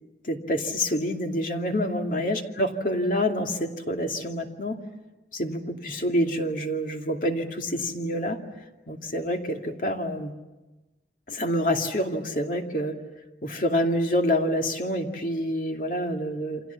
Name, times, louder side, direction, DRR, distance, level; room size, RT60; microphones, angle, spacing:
voice 1, 0.3-4.8 5.3-8.4 8.9-10.3 11.3-13.0 13.4-16.6, equal, 50° left, 3 dB, 2.5 m, -27 dB
29.0 x 26.0 x 7.2 m, 1.1 s
head